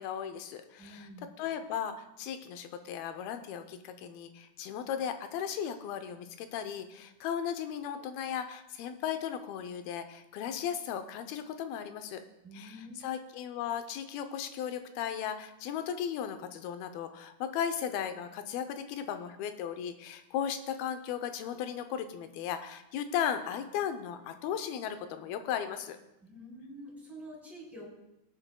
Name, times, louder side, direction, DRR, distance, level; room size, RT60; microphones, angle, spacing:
voice 1, 0.0-1.1 1.4-12.2 12.5-26.0, left 8 dB, 90° left, 8 dB, 2.6 m, -36 dB
voice 2, 0.8-1.3 12.4-13.0 26.2-27.9, equal, ahead, -5 dB, 3.1 m, -47 dB
20.0 x 9.0 x 2.2 m, 0.89 s
omnidirectional pair, 4.2 m